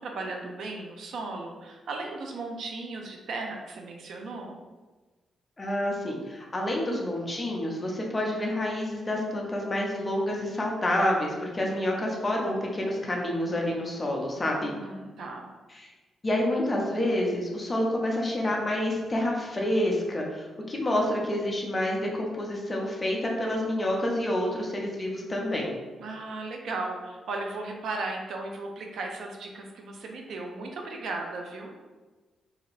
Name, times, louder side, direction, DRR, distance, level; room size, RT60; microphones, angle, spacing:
voice 1, 0.0-4.6 14.6-15.5 26.0-31.7, right 3 dB, 65° right, 2 dB, 0.4 m, -36 dB
voice 2, 5.6-14.7 15.8-15.9 16.2-25.7, left 1 dB, 20° left, -1 dB, 0.5 m, -28 dB
2.7 x 2.4 x 3.0 m, 1.3 s
wide cardioid pair, 165°, 0 cm